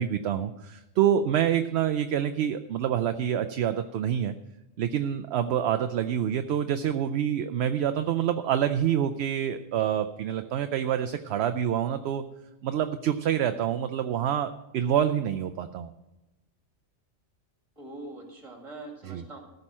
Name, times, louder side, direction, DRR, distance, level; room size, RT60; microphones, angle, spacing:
voice 1, 0.0-4.3 4.8-12.2 12.6-15.9 19.0-19.2, right 9 dB, 65° right, 10 dB, 0.7 m, -27 dB
voice 2, 17.8-19.4, right 2 dB, 25° right, 1 dB, 2.3 m, -43 dB
14.0 x 5.4 x 7.4 m, 1.0 s
omnidirectional pair, 1.3 m